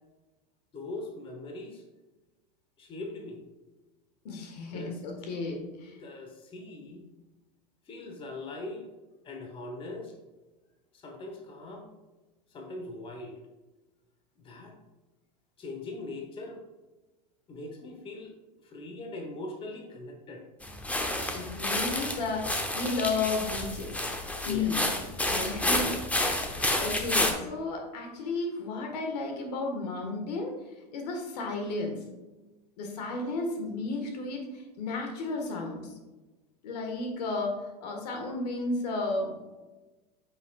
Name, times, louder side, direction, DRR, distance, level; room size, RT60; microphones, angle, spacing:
voice 1, 0.7-1.8 2.8-3.4 4.7-5.0 6.0-7.0 7.9-8.9 9.2-10.1 10.9-11.9 12.5-13.4 14.4-14.7 15.6-16.6 17.5-18.3 18.6-20.4 24.4-24.8 25.3-25.6, left 2 dB, 25° left, 2 dB, 1.2 m, -41 dB
voice 2, 4.2-6.0 21.3-24.0 24.3-24.8 25.2-25.9 26.4-30.6 30.9-32.0 32.8-35.9 36.6-39.3, left 3 dB, 75° left, 2 dB, 1.7 m, -33 dB
sound 1, 20.6-27.3, left 1 dB, 5° left, 0.8 m, -30 dB
7.9 x 5.7 x 2.4 m, 1.1 s
supercardioid pair, 115°, 21 cm